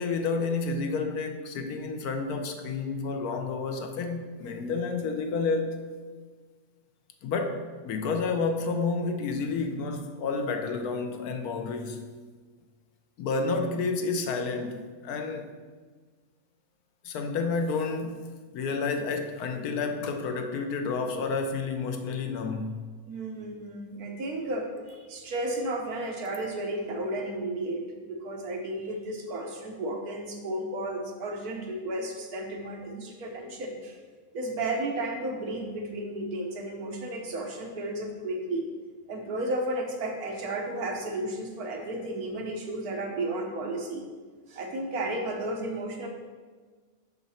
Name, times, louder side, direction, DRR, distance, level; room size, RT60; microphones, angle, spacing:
voice 1, 0.0-5.8 7.2-12.1 13.2-15.5 17.0-18.3 18.5-22.9, left 4 dB, 85° left, 6 dB, 1.2 m, -30 dB
voice 2, 23.1-34.0 34.3-38.7 39.1-44.0 44.5-46.1, right 1 dB, 80° right, 1 dB, 1.5 m, -33 dB
6.7 x 5.8 x 4.2 m, 1.5 s
omnidirectional pair, 1.6 m